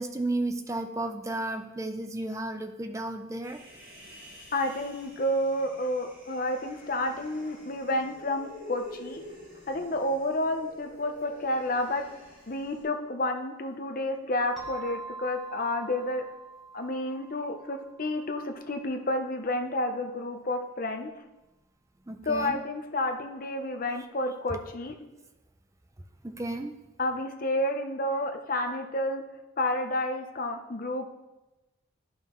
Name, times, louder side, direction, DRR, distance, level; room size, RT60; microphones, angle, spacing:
voice 1, 0.0-3.6 22.1-22.6 26.2-26.7, right 2 dB, 15° right, 6 dB, 0.4 m, -33 dB
Human voice, 3.4-12.8, left 1 dB, 40° right, 3.0 m, -49 dB
voice 2, 4.5-9.2 9.7-12.0 12.5-16.2 16.7-21.1 22.3-24.9 27.0-29.2 29.6-31.1, left 1 dB, 45° left, 5 dB, 0.6 m, -30 dB
sound 1, 14.6-19.0, right 3 dB, ahead, 1.6 m, -45 dB
11.0 x 5.6 x 3.0 m, 1.0 s
head